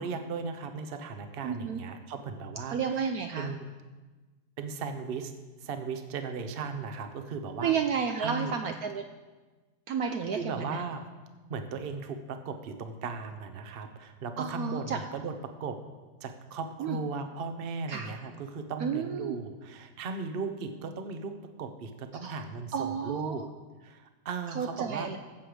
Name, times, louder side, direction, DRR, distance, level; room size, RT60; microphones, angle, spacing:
voice 1, 0.0-3.7 4.6-5.3 5.6-7.7 8.2-8.6 10.3-11.0 11.5-15.8 16.2-23.4 23.8-25.1, right 4 dB, 40° right, 7 dB, 0.9 m, -37 dB
voice 2, 1.4-1.8 2.7-3.5 7.6-9.0 9.9-10.8 14.4-15.0 16.8-17.0 17.9-18.1 18.8-19.4 22.2-22.4 22.7-23.3 24.6-25.2, right 6 dB, 65° right, 5 dB, 1.0 m, -31 dB
15.0 x 7.9 x 5.0 m, 1.3 s
omnidirectional pair, 1.9 m